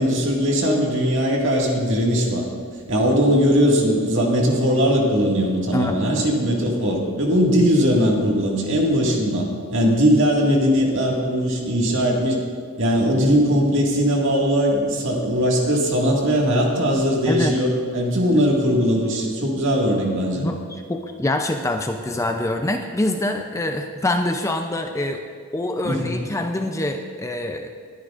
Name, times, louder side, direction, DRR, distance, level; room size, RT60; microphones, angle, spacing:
voice 1, 0.0-2.5 2.9-12.4 12.8-20.5 25.8-26.1, equal, 55° right, -1 dB, 2.0 m, -20 dB
voice 2, 20.4-25.2 25.5-27.7, left 1 dB, 15° left, 4 dB, 0.5 m, -25 dB
21.5 x 9.7 x 2.5 m, 2.1 s
head